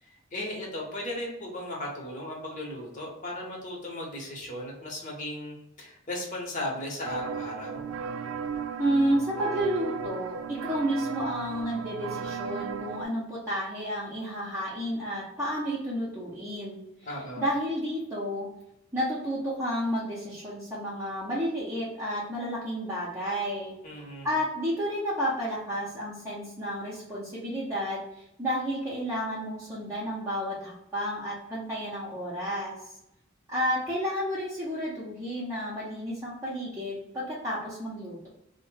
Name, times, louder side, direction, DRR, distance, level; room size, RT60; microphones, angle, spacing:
voice 1, 0.0-7.9 17.0-17.4 23.8-24.3, left 1 dB, 40° left, -2 dB, 1.0 m, -36 dB
sound 1, 7.0-13.0, right 6 dB, 70° right, 0.3 m, -35 dB
voice 2, 8.8-16.8 17.4-18.5 18.9-23.7 24.2-32.8 33.5-38.3, equal, 15° right, -8 dB, 0.7 m, -31 dB
2.8 x 2.1 x 3.3 m, 0.84 s
head